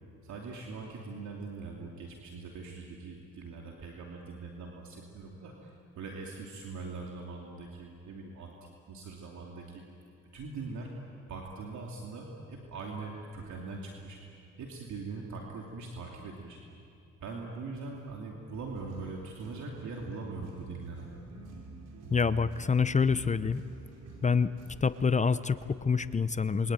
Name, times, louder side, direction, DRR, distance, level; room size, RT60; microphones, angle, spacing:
voice 1, 0.2-9.8 10.3-11.0 11.3-14.2 14.6-16.6 17.2-21.1, right 3 dB, 70° right, 0 dB, 3.0 m, -42 dB
sound 1, 18.5-25.1, right 3 dB, 85° right, 5.5 m, -48 dB
voice 2, 22.1-23.6 24.2-24.5 24.8-26.7, left 5 dB, 25° left, 14 dB, 0.7 m, -26 dB
28.0 x 23.0 x 9.1 m, 2.6 s
cardioid pair, 90°, 30 cm